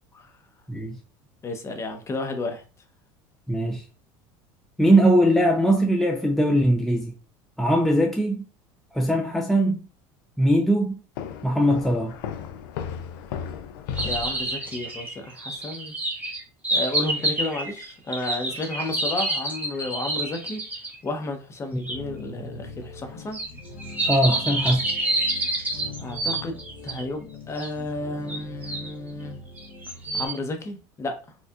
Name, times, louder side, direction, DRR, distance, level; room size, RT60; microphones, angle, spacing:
voice 1, 1.4-2.6 9.0-9.2 14.0-15.9 16.7-20.6 21.0-23.4 26.0-29.4 30.1-31.2, left 2 dB, 25° left, 0.8 m, -32 dB
voice 2, 3.5-3.8 4.8-7.1 7.6-8.4 8.9-9.8 10.4-11.0 11.4-12.1 21.7-21.8 24.1-24.8, right 1 dB, ahead, 0.5 m, -20 dB
sound 1, 11.2-14.8, left 8 dB, 80° left, 0.5 m, -35 dB
sound 2, 14.0-21.0 21.9-22.0 23.3-27.0 27.6-27.7 28.3-28.9 29.6-30.4, right 2 dB, 15° right, 1.1 m, -28 dB
sound 3, 21.9-30.3, left 3 dB, 55° left, 0.9 m, -41 dB
4.4 x 2.4 x 2.4 m
supercardioid pair, 105°, 11 cm